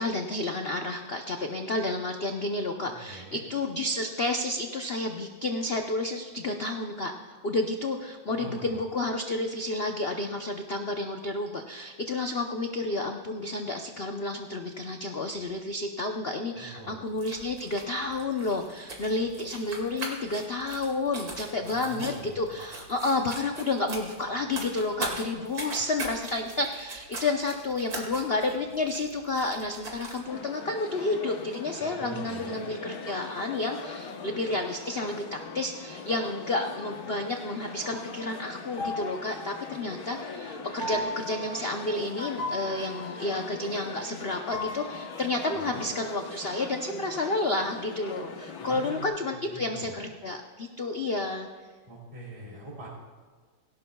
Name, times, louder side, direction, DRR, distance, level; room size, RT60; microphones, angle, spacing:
voice 1, 0.0-51.5, left 2 dB, 70° left, 4 dB, 0.5 m, -31 dB
voice 2, 2.8-3.4 8.3-8.9 16.5-17.0 21.6-22.5 31.8-32.6 45.5-45.8 48.6-49.1 49.5-50.0 51.9-52.9, right 1 dB, 15° right, -6 dB, 3.3 m, -43 dB
sound 1, 17.1-30.2, right 2 dB, 50° right, 2.7 m, -41 dB
sound 2, 30.3-49.1, left 4 dB, 55° left, 1.4 m, -41 dB
sound 3, 35.4-37.1 38.8-40.4 40.8-44.2 44.5-46.6, left 1 dB, 35° right, 4.4 m, -40 dB
18.0 x 17.5 x 2.3 m, 1.5 s
omnidirectional pair, 2.2 m